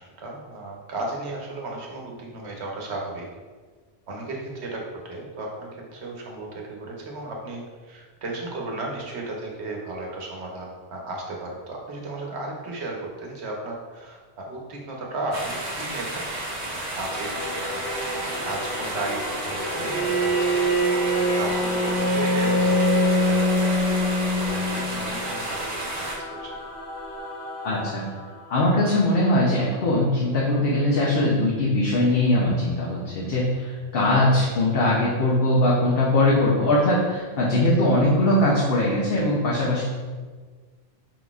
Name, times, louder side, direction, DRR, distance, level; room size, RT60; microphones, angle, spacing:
voice 1, 0.0-3.3 4.1-16.2 16.6-17.8 18.1-25.8 26.1-26.5, right 2 dB, 85° right, -1 dB, 1.1 m, -35 dB
sound 1, 15.3-26.2, right 1 dB, 65° right, 1.1 m, -32 dB
Singing / Musical instrument, 17.0-29.9, left 1 dB, 25° left, 0.8 m, -35 dB
Bowed string instrument, 19.8-25.2, equal, 35° right, 1.2 m, -23 dB
voice 2, 27.6-28.1 28.5-39.8, left 1 dB, 65° left, -5 dB, 0.9 m, -21 dB
4.9 x 3.9 x 2.4 m, 1.5 s
omnidirectional pair, 1.1 m